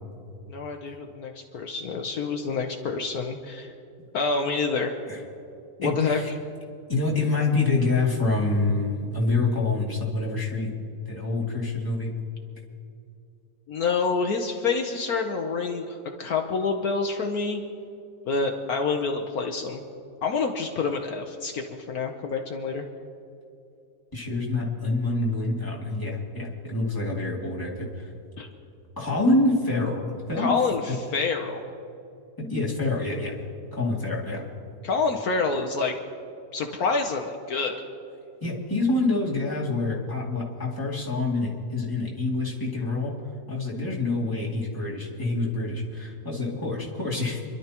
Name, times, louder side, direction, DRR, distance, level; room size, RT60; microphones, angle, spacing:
voice 1, 0.5-3.7 4.1-5.0 5.8-6.2 13.7-17.6 18.2-19.8 20.2-22.8 28.4-28.5 30.4-31.6 34.8-35.9 36.5-37.7, left 4 dB, 65° left, 3 dB, 1.3 m, -27 dB
voice 2, 5.8-6.3 6.9-10.7 11.1-12.1 24.1-28.1 29.0-30.0 30.3-30.5 30.9-31.0 32.4-33.3 33.7-34.4 38.4-43.1 43.5-47.4, left 2 dB, 10° left, -5 dB, 2.5 m, -26 dB
28.5 x 12.0 x 3.0 m, 2.7 s
omnidirectional pair, 1.7 m